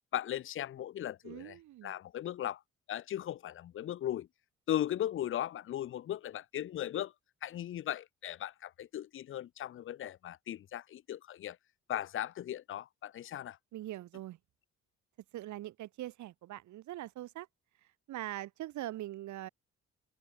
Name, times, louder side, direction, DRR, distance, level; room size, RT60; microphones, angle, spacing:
voice 1, 0.1-1.6 1.8-2.6 2.9-4.3 4.7-7.1 7.4-11.6 11.9-13.6, left 11 dB, 45° left, 0.4 m, -37 dB
voice 2, 1.2-2.0 13.7-14.4 15.3-17.5 18.1-19.5, right 14 dB, 70° right, 0.8 m, -42 dB
cardioid pair, 90°, 30 cm